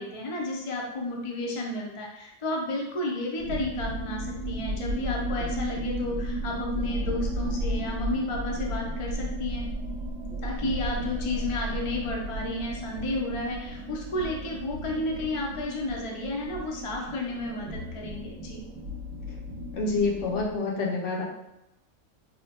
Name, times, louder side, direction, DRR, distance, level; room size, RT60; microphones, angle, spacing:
voice 1, 0.0-9.7 10.4-18.6, left 2 dB, 40° left, -1 dB, 0.4 m, -32 dB
sound 1, 3.4-20.6, right 1 dB, 75° right, 0.9 m, -34 dB
voice 2, 19.7-21.2, left 3 dB, 75° left, -2 dB, 1.0 m, -27 dB
4.1 x 2.1 x 2.8 m, 0.87 s
omnidirectional pair, 1.3 m